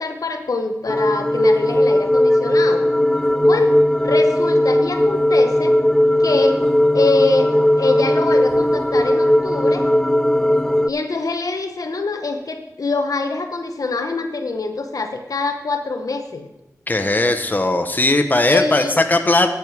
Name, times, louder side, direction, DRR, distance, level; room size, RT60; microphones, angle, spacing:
voice 1, 0.0-2.9 3.4-3.8 4.0-5.8 6.2-6.6 6.9-9.8 10.9-16.5 18.4-19.0, left 3 dB, 70° left, 6 dB, 1.0 m, -24 dB
sound 1, 0.9-10.9, left 1 dB, 10° left, 0.3 m, -17 dB
voice 2, 16.9-19.5, left 2 dB, 30° left, 6 dB, 1.0 m, -18 dB
10.5 x 9.3 x 4.8 m, 0.93 s
cardioid pair, 50°, 6 cm